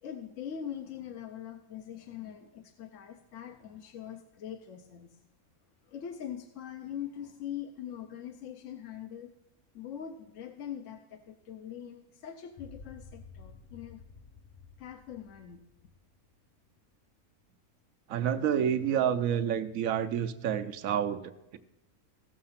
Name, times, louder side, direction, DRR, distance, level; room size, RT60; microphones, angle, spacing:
voice 1, 0.0-5.2 5.9-9.3 9.7-14.0 14.8-15.6, left 9 dB, 65° left, 6 dB, 1.0 m, -42 dB
sound 1, 12.6-16.9, left 4 dB, 45° left, 0.5 m, -52 dB
voice 2, 18.1-21.6, right 9 dB, 70° right, 10 dB, 1.1 m, -29 dB
16.0 x 6.6 x 5.7 m, 0.88 s
omnidirectional pair, 1.5 m